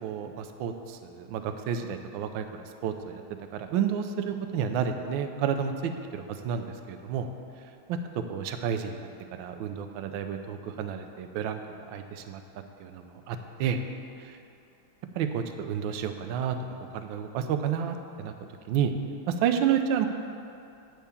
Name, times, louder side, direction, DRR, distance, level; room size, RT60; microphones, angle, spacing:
voice 1, 0.0-3.2 3.5-7.3 7.9-11.6 11.9-12.4 12.8-13.8 15.1-16.6 16.9-18.3 18.7-18.9 19.3-20.1, right 8 dB, 75° right, 6 dB, 1.3 m, -30 dB
8.8 x 4.6 x 6.9 m, 2.6 s
omnidirectional pair, 2.3 m